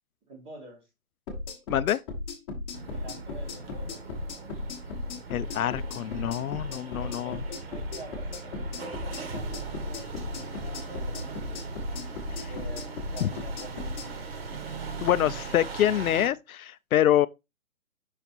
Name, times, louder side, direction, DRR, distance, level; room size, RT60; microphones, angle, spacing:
voice 1, 0.3-0.9 2.9-4.0 6.9-11.6 12.5-14.3, right 1 dB, 15° right, 1.0 m, -46 dB
sound 1, 1.3-14.1, left 3 dB, 15° left, 1.1 m, -36 dB
voice 2, 1.7-2.0 5.3-7.4 12.4-12.5 15.0-17.3, left 11 dB, 75° left, 0.5 m, -26 dB
sound 2, 2.7-16.3, right 4 dB, 45° right, 1.3 m, -39 dB
5.7 x 4.1 x 4.3 m
hypercardioid pair, 165°, 43 cm